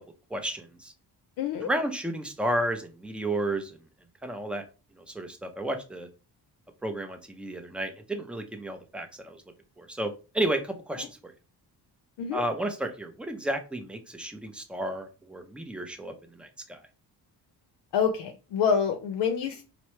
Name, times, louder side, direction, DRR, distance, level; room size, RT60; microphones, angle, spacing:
voice 1, 0.3-0.9 1.6-3.8 4.2-4.6 5.0-6.1 6.8-9.4 9.8-11.3 12.3-16.8, right 1 dB, 5° right, 6 dB, 0.4 m, -32 dB
voice 2, 1.4-1.7 11.0-11.1 12.2-12.4 17.9-19.6, left 7 dB, 80° left, 5 dB, 0.6 m, -27 dB
4.3 x 2.0 x 3.0 m, 0.32 s
cardioid pair, 115°, 40 cm